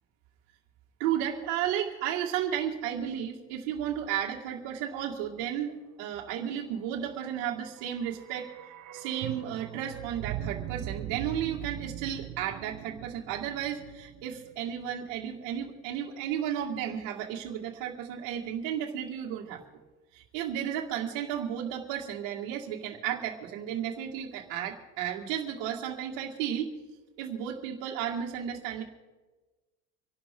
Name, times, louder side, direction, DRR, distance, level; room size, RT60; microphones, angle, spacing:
voice 1, 1.0-8.5 8.9-19.6 20.1-26.7 27.2-28.8, right 9 dB, 75° right, -6 dB, 2.3 m, -33 dB
sound 1, 7.5-15.6 15.9-16.0, right 11 dB, 50° right, 0.9 m, -41 dB
26.5 x 12.5 x 3.9 m, 1.2 s
cardioid pair, 165°, 39 cm